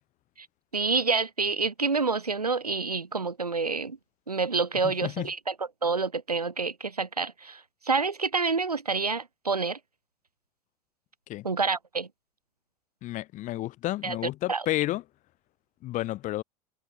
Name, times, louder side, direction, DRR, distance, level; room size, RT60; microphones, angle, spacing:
voice 1, 0.7-4.0 4.3-5.5 5.8-9.8 11.4-12.1 14.0-14.2 14.5-14.6, right 4 dB, 90° right, 0.9 m, -28 dB
voice 2, 4.8-5.3 11.3-11.4 13.0-15.0 15.8-16.4, left 16 dB, 40° left, 1.1 m, -31 dB
figure-of-eight pair, 75°, 19 cm